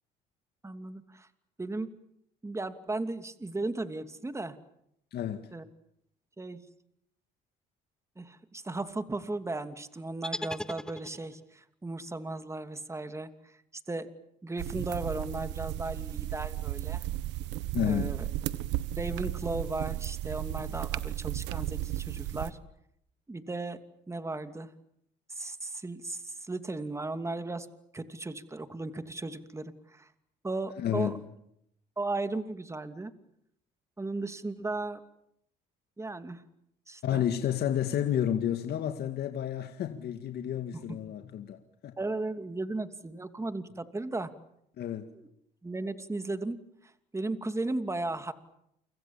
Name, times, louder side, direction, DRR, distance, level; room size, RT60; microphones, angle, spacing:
voice 1, 0.6-1.3 1.6-1.9 2.4-4.6 5.5-5.6 6.4-6.6 8.2-13.6 13.9-14.1 14.4-17.0 17.9-18.2 18.9-22.6 23.3-23.8 24.1-24.7 25.3-27.7 27.9-30.1 30.4-31.1 32.0-33.1 34.0-35.0 36.0-36.4 36.9-37.2 40.7-41.0 42.0-44.3 45.2-45.3 45.6-48.3, right 2 dB, 15° right, 2.7 m, -36 dB
voice 2, 5.1-5.5 17.7-18.1 30.8-31.2 37.0-42.0 44.8-45.1, left 10 dB, 65° left, 2.1 m, -31 dB
sound 1, 10.2-11.5, left 1 dB, 5° left, 1.2 m, -38 dB
sound 2, 14.6-22.5, right 15 dB, 80° right, 1.4 m, -34 dB
29.0 x 25.5 x 7.4 m
supercardioid pair, 80°, 18 cm